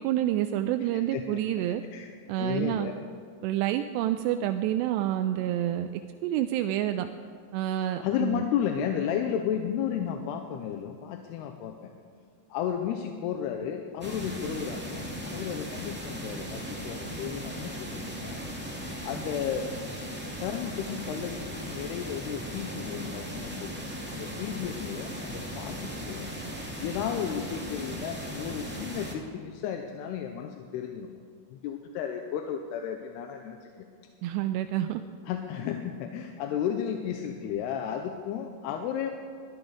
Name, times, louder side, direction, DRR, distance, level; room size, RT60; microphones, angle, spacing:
voice 1, 0.0-1.8 2.3-2.9 3.4-5.9 6.2-7.1 7.5-8.4 34.2-35.0, right 12 dB, 85° right, 8 dB, 2.7 m, -28 dB
voice 2, 0.8-1.4 1.7-2.1 2.4-3.0 8.0-11.9 12.5-18.4 19.0-19.7 20.4-23.8 24.1-26.3 26.8-31.1 31.5-33.9 35.3-39.1, left 9 dB, 80° left, 4 dB, 2.8 m, -33 dB
sound 1, 14.0-29.1, equal, 10° right, 0.6 m, -37 dB
21.5 x 13.5 x 4.9 m, 2.2 s
omnidirectional pair, 4.9 m